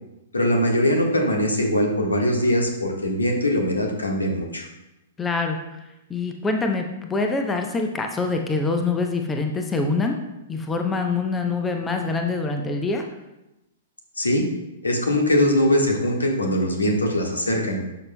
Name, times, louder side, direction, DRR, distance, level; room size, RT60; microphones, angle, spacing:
voice 1, 0.3-4.7 14.2-14.5 14.8-17.8, left 1 dB, 80° left, 1 dB, 1.5 m, -21 dB
voice 2, 5.2-5.6 6.1-10.2 10.5-13.0, left 3 dB, 15° left, 4 dB, 0.7 m, -25 dB
11.5 x 5.9 x 2.2 m, 0.95 s
figure-of-eight pair, 110°, 0 cm